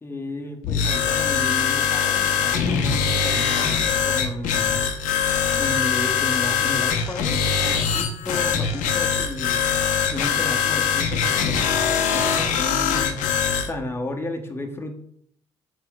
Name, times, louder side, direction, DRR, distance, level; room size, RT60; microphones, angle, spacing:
voice 1, 0.0-4.8 5.5-9.6 10.1-13.2 13.6-14.9, left 1 dB, 15° left, 3 dB, 0.8 m, -33 dB
sound 1, 0.6-13.7, left 7 dB, 65° left, 0.6 m, -22 dB
4.4 x 4.3 x 2.3 m, 0.68 s
hypercardioid pair, 55°, 14 cm